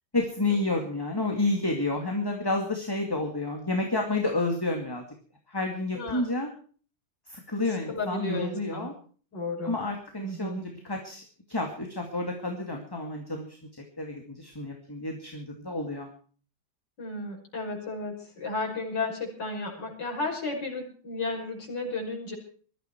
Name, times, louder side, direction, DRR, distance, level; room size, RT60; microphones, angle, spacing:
voice 1, 0.1-5.0 5.5-6.5 7.3-8.9 9.6-11.2 11.5-13.5 14.0-16.1, left 2 dB, 10° left, 2 dB, 2.3 m, -30 dB
voice 2, 7.7-8.9 9.3-9.7 10.2-10.6 17.0-22.3, left 2 dB, 60° left, -2 dB, 6.2 m, -33 dB
21.5 x 14.0 x 4.6 m, 0.43 s
omnidirectional pair, 2.1 m